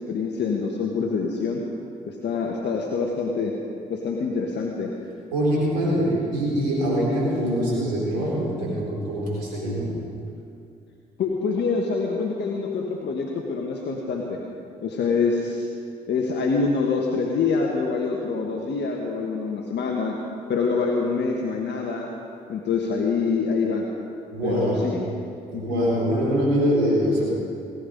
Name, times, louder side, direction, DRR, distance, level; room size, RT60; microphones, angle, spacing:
voice 1, 0.1-1.6 2.1-3.5 3.9-4.9 11.2-14.4 14.8-15.7 16.1-20.2 20.5-22.1 22.5-23.9 24.4-25.0 25.5-25.9, left 4 dB, 55° left, 0 dB, 1.5 m, -25 dB
voice 2, 5.3-9.9 24.3-25.0 25.5-27.2, equal, 85° right, -5 dB, 4.1 m, -23 dB
18.0 x 11.0 x 5.3 m, 2.5 s
hypercardioid pair, 45°, 21 cm